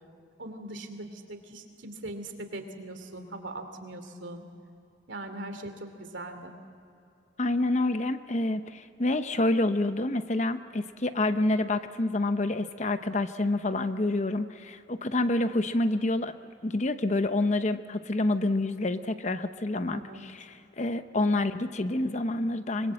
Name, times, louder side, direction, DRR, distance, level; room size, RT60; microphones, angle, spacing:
voice 1, 0.4-4.4 5.1-6.5 19.9-20.3, right 1 dB, 80° right, 7 dB, 2.7 m, -40 dB
voice 2, 7.4-16.3 16.6-22.9, left 2 dB, 40° left, 10 dB, 0.8 m, -28 dB
25.0 x 22.5 x 7.6 m, 2.6 s
head